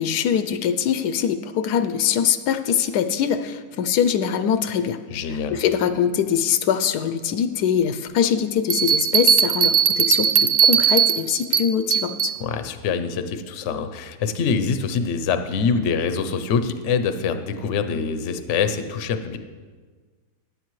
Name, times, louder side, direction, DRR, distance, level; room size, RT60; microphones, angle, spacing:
voice 1, 0.0-5.0 5.3-12.3, left 8 dB, 80° left, 9 dB, 1.1 m, -23 dB
voice 2, 5.1-5.6 12.4-19.4, left 5 dB, 60° left, 9 dB, 0.9 m, -24 dB
Bell, 8.7-12.4, right 9 dB, 70° right, 0.6 m, -19 dB
15.0 x 10.5 x 3.1 m, 1.5 s
omnidirectional pair, 1.7 m